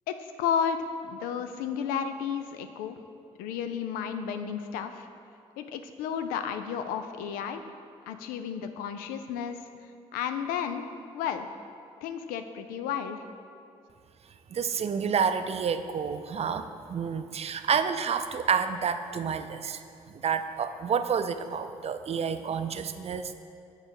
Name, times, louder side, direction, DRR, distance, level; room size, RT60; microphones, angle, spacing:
voice 1, 0.1-3.0 3.4-5.1 5.6-7.6 8.1-9.6 10.1-10.8 11.1-11.5 12.0-13.2, left 7 dB, 85° left, 8 dB, 0.4 m, -32 dB
voice 2, 14.5-23.3, right 6 dB, 45° right, 9 dB, 0.4 m, -29 dB
7.1 x 3.9 x 5.3 m, 2.5 s
supercardioid pair, 55°, 15 cm